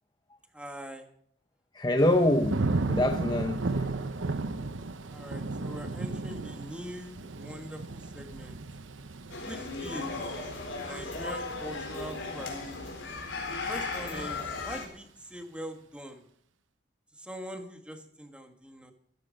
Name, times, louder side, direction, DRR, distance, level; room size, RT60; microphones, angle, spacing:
voice 1, 0.5-1.1 5.1-8.6 9.4-10.2 10.8-12.5 13.5-16.2 17.1-18.9, equal, 5° right, 1.7 m, -42 dB
voice 2, 1.7-3.8, left 1 dB, 20° left, 0.8 m, -25 dB
Thunder / Rain, 2.0-12.9 13.3-13.8, right 3 dB, 75° right, 0.9 m, -35 dB
sound 1, 9.3-14.9, left 3 dB, 75° left, 4.1 m, -36 dB
15.5 x 14.0 x 5.3 m
head